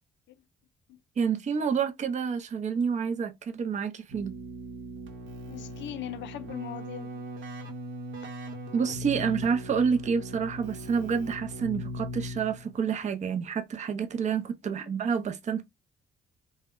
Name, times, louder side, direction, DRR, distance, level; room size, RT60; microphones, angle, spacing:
voice 1, 1.2-4.3 8.7-15.6, right 6 dB, 35° right, 0.5 m, -28 dB
Keyboard (musical), 4.1-12.8, equal, 70° right, 0.8 m, -39 dB
voice 2, 5.5-7.2 14.7-14.9, left 13 dB, 65° left, 0.4 m, -40 dB
2.1 x 2.1 x 3.5 m
cardioid pair, 90°, 20 cm